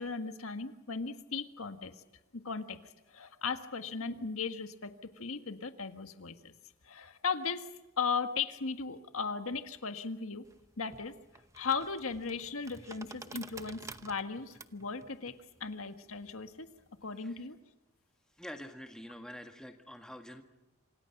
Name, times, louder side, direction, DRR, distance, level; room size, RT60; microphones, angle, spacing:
voice 1, 0.0-1.9 2.3-6.5 6.8-7.7 8.0-10.4 10.8-11.1 11.5-16.7 17.0-17.6, left 5 dB, 90° left, 7 dB, 1.6 m, -37 dB
sound 1, 10.4-17.1, right 3 dB, 15° right, 0.8 m, -51 dB
voice 2, 18.4-20.4, equal, 5° left, 4 dB, 1.7 m, -46 dB
27.5 x 26.5 x 5.9 m, 1.0 s
head